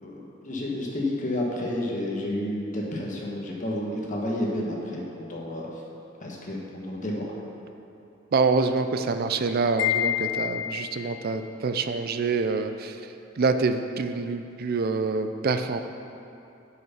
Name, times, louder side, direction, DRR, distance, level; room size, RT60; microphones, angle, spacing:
voice 1, 0.0-5.7 6.2-7.3, left 1 dB, 40° left, -2 dB, 1.3 m, -30 dB
voice 2, 8.3-13.0 13.4-15.8, right 4 dB, 50° right, 8 dB, 0.4 m, -26 dB
Wind chime, 9.8-11.2, left 12 dB, 65° left, 0.5 m, -27 dB
7.6 x 5.7 x 5.7 m, 2.8 s
head